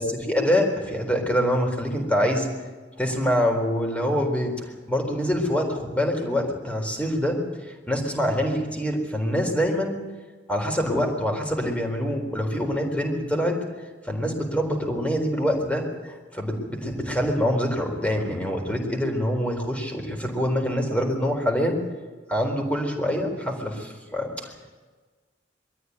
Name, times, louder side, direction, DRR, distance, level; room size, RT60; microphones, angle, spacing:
voice 1, 0.0-2.5 3.0-4.5 4.9-7.4 7.9-9.9 10.5-13.6 14.0-21.8 22.3-24.5, equal, 5° left, 2 dB, 3.9 m, -25 dB
23.0 x 14.0 x 9.6 m, 1.4 s
head